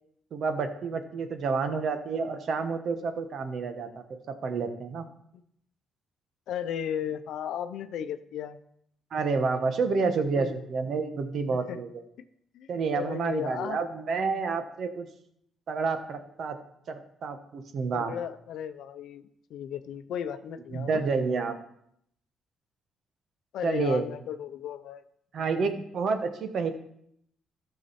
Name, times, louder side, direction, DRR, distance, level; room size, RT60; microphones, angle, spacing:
voice 1, 0.3-5.1 9.1-11.9 12.7-15.1 15.7-16.6 16.9-18.1 20.7-21.5 23.6-24.1 25.3-26.7, right 4 dB, 60° right, 8 dB, 1.3 m, -29 dB
voice 2, 6.5-8.6 10.3-10.6 11.5-11.8 12.2-12.3 12.5-13.8 17.9-21.0 23.5-25.0 25.4-25.7, left 9 dB, 80° left, 10 dB, 0.6 m, -35 dB
13.5 x 6.5 x 4.2 m, 0.71 s
cardioid pair, 90°, 0 cm